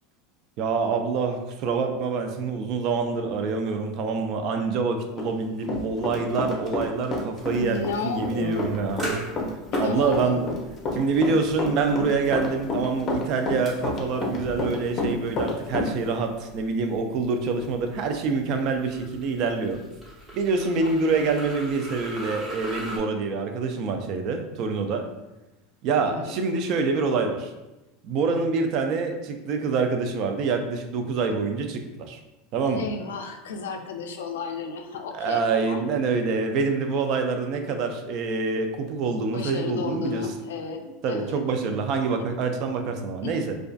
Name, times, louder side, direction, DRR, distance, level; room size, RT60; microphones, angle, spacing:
voice 1, 0.6-9.0 9.8-10.5 10.9-19.8 20.3-25.1 25.8-27.5 28.0-32.2 32.5-32.9 35.1-40.3 41.0-43.5, right 4 dB, 55° right, 5 dB, 0.3 m, -26 dB
Run, 5.2-6.8 7.1-15.9, left 2 dB, 35° left, 0.6 m, -29 dB
sound 1, 7.4-23.0, right 2 dB, 20° right, 1.0 m, -41 dB
voice 2, 7.5-8.7 9.7-10.5 20.8-21.2 26.1-26.3 32.6-35.8 39.3-41.4 43.2-43.5, left 4 dB, 90° left, 5 dB, 0.3 m, -33 dB
2.4 x 2.3 x 2.3 m, 1.0 s
supercardioid pair, 115°, 0 cm